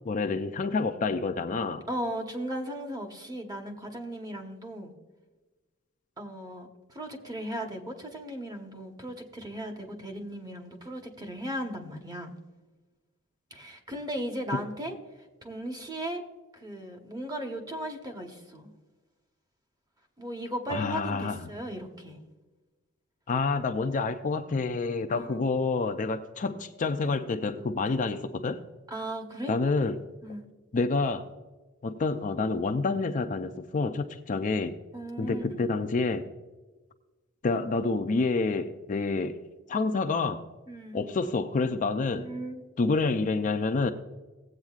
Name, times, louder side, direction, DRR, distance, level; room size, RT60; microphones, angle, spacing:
voice 1, 0.1-1.8 20.7-21.4 23.3-28.6 29.5-30.0 30.7-31.2 31.8-34.8 35.2-36.3 37.4-39.4 39.7-40.4 40.9-42.3 42.8-43.9, left 3 dB, 35° left, 7 dB, 0.4 m, -28 dB
voice 2, 1.9-4.9 6.2-12.3 13.5-15.0 15.4-16.2 16.5-18.7 20.2-22.2 25.1-25.5 28.9-29.6 30.2-30.4 34.9-35.7 40.7-41.0 42.2-42.6, right 1 dB, 20° right, 3 dB, 1.1 m, -37 dB
17.5 x 8.1 x 2.4 m, 1.2 s
head